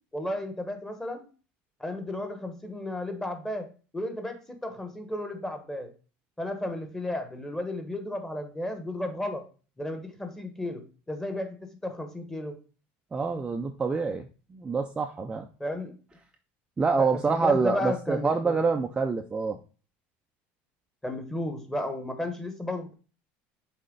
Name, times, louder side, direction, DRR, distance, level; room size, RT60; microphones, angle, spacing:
voice 1, 0.1-1.3 1.8-3.7 3.9-5.9 6.4-9.4 9.8-12.6 15.6-15.9 17.0-18.6 21.0-22.9, left 1 dB, 10° left, 6 dB, 1.2 m, -33 dB
voice 2, 13.1-15.4 16.8-19.6, right 4 dB, 15° right, 4 dB, 0.5 m, -27 dB
6.6 x 4.2 x 3.8 m, 0.36 s
supercardioid pair, 125°, 5 cm